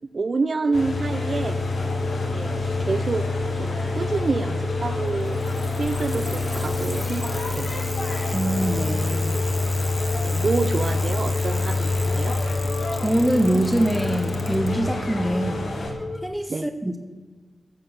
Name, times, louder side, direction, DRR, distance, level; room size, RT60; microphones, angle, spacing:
voice 1, 0.1-1.6 2.3-3.3 3.6-5.4 5.8-7.7 10.2-12.3 16.5-16.7, right 3 dB, 45° right, 11 dB, 0.5 m, -27 dB
sound 1, 0.6-16.3, left 3 dB, 35° left, 0.8 m, -36 dB
sound 2, 0.7-15.9, left 2 dB, 85° left, 2.3 m, -26 dB
Bicycle, 5.1-14.7 15.8-15.9, left 1 dB, 10° left, 1.5 m, -38 dB
voice 2, 8.3-9.4 13.0-15.7 16.2-17.0, right 1 dB, 5° right, 5 dB, 0.8 m, -24 dB
14.5 x 6.6 x 6.5 m, 1.4 s
wide cardioid pair, 140°, 0 cm